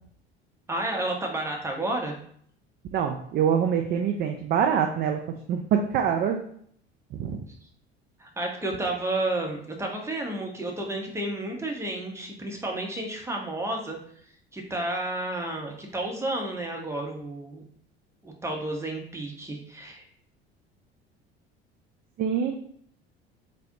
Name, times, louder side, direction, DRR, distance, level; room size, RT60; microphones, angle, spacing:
voice 1, 0.7-2.1 8.2-14.0 14.5-17.6 18.2-20.0, right 1 dB, 10° right, 1 dB, 0.7 m, -31 dB
voice 2, 2.9-5.2 5.5-6.4 7.1-7.4 22.2-22.5, right 8 dB, 30° right, 4 dB, 0.4 m, -25 dB
4.1 x 2.0 x 2.6 m, 0.64 s
figure-of-eight pair, 65°, 32 cm